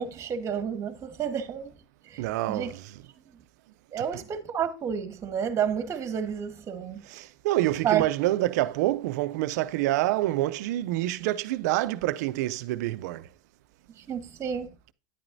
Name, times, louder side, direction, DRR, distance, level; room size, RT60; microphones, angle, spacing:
voice 1, 0.0-1.8 2.1-2.2 2.5-2.7 3.9-7.0 7.8-8.0 13.9-14.7, right 8 dB, 30° right, 1.3 m, -30 dB
voice 2, 2.2-3.0 7.0-13.3, right 16 dB, 70° right, 0.5 m, -27 dB
10.0 x 8.8 x 2.6 m
supercardioid pair, 115°, 9 cm